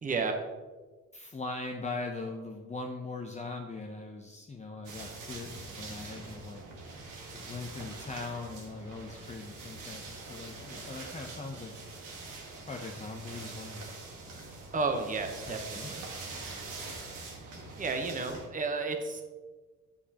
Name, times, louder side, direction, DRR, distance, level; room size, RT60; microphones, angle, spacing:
voice 1, 0.0-0.4 14.7-16.0 17.8-19.2, right 4 dB, 25° right, 5 dB, 0.9 m, -32 dB
voice 2, 1.1-6.6 7.3-11.8 12.7-13.8 15.5-16.2, left 3 dB, 25° left, 2 dB, 0.6 m, -40 dB
sound 1, 4.8-18.5, right 3 dB, 90° right, 1.5 m, -44 dB
7.8 x 6.8 x 2.9 m, 1.3 s
cardioid pair, 90°, 30 cm